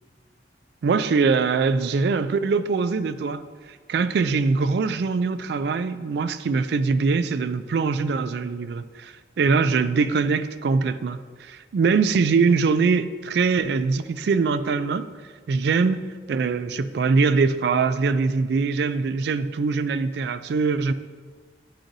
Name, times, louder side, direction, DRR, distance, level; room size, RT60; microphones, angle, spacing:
voice 1, 0.8-3.4 3.9-15.1 15.5-20.9, right 4 dB, 65° right, 12 dB, 0.3 m, -22 dB
10.0 x 4.8 x 2.6 m, 1.5 s
head